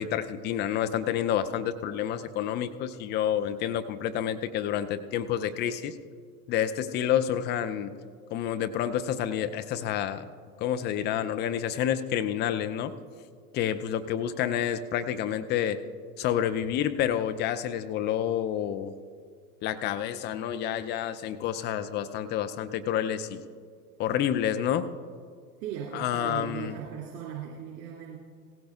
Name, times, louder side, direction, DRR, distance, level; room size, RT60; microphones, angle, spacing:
voice 1, 0.0-5.9 6.5-7.9 8.3-10.2 10.6-12.9 13.5-15.8 16.2-18.9 19.6-23.4 24.0-24.9 25.9-26.8, left 10 dB, 25° left, 11 dB, 0.4 m, -29 dB
voice 2, 25.6-28.2, right 8 dB, 60° right, -3 dB, 2.6 m, -38 dB
17.5 x 16.5 x 2.4 m, 2.1 s
hypercardioid pair, 95°, 48 cm